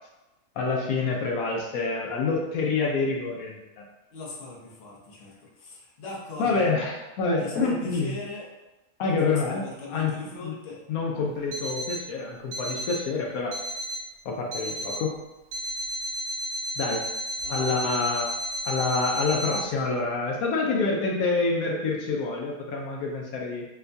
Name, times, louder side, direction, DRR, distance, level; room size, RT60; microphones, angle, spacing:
voice 1, 0.6-3.8 6.4-8.2 9.0-10.1 10.4-10.5 10.9-13.6 14.2-15.1 16.8-17.1 17.5-18.3 18.6-23.7, left 4 dB, 80° left, -1 dB, 1.0 m, -27 dB
voice 2, 4.1-6.7 7.4-8.5 9.1-10.8 17.4-18.2, left 3 dB, 50° left, -5 dB, 1.0 m, -40 dB
Alarm, 11.5-12.1 12.5-13.1 13.5-14.1 14.5-15.1 15.5-19.6, equal, 75° right, 1.1 m, -33 dB
4.4 x 2.2 x 2.6 m, 1.0 s
omnidirectional pair, 1.5 m